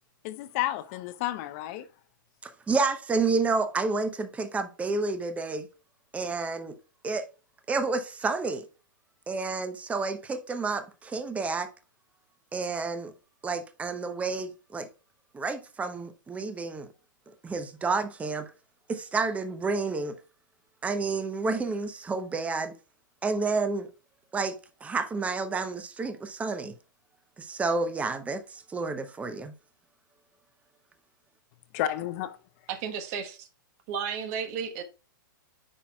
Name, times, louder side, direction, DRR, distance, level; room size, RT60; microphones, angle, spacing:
voice 1, 0.2-1.9 31.7-32.3, left 13 dB, 45° left, 0.7 m, -31 dB
voice 2, 2.7-5.7 6.1-6.7 7.0-7.3 7.7-8.7 9.3-11.7 12.5-13.1 13.4-14.9 15.3-16.9 17.4-18.4 18.9-20.2 20.8-22.7 23.2-23.9 24.3-24.6 24.8-26.7 27.4-29.5, right 4 dB, 10° right, 0.8 m, -30 dB
voice 3, 32.7-33.5 33.9-34.8, right 7 dB, 45° right, 1.3 m, -33 dB
9.9 x 4.2 x 2.3 m
hypercardioid pair, 120°, 11 cm